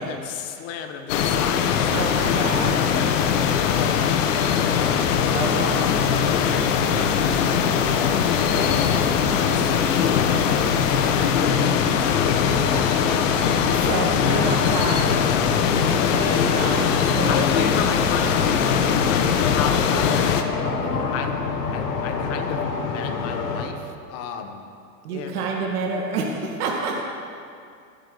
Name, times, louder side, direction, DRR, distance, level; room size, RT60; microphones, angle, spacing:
voice 1, 0.0-4.8 5.6-5.9 6.2-9.1 9.5-9.8 10.1-13.1 17.3-20.7 21.1-21.4 21.7-24.7 25.1-25.7, left 6 dB, 30° left, 5 dB, 1.4 m, -34 dB
sound 1, 1.1-20.4, left 7 dB, 50° left, 1.2 m, -21 dB
voice 2, 1.9-2.9 5.3-5.8 13.6-15.4 15.7-17.4 20.6-21.1 25.0-27.0, right 4 dB, 65° right, -2 dB, 2.4 m, -29 dB
sound 2, 3.8-23.6, left 5 dB, 75° left, 2.1 m, -29 dB
22.0 x 9.1 x 4.1 m, 2.4 s
hypercardioid pair, 135°, 48 cm